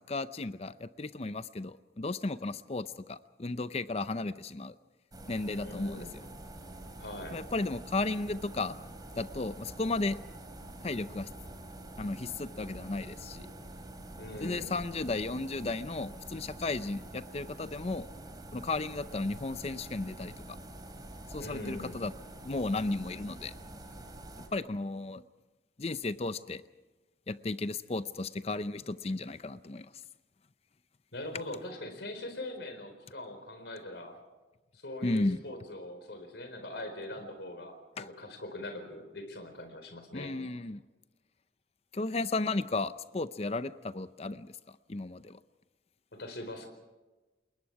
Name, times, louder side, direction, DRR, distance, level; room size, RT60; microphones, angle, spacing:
voice 1, 0.1-4.7 5.3-6.0 7.3-8.8 9.2-10.2 10.8-11.3 12.0-13.5 14.4-18.1 18.5-20.6 21.3-22.1 22.4-23.5 24.5-25.2 25.8-26.6 27.3-29.9 35.0-35.4 38.0-38.1 40.1-40.8 41.9-44.6 44.9-45.4, left 2 dB, 35° left, 14 dB, 0.6 m, -34 dB
sound 1, 5.1-24.5, right 1 dB, 25° right, 2.8 m, -46 dB
voice 2, 5.6-6.1 7.0-7.4 14.1-14.8 21.4-22.0 31.1-34.2 34.7-40.3 46.1-46.7, left 1 dB, 80° left, 6 dB, 4.4 m, -42 dB
28.5 x 21.5 x 4.8 m, 1.1 s
head